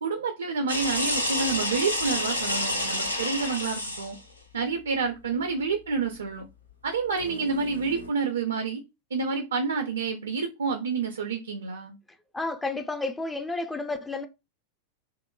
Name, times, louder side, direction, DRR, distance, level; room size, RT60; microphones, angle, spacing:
voice 1, 0.0-4.2 4.5-6.4 6.8-8.8 9.1-12.0, right 4 dB, 70° right, 0.4 m, -29 dB
sound 1, 0.7-4.2 7.2-8.1, left 1 dB, 80° left, 0.5 m, -29 dB
voice 2, 12.3-14.3, left 3 dB, 10° left, 0.3 m, -31 dB
2.9 x 2.0 x 2.2 m
figure-of-eight pair, 90°, 0 cm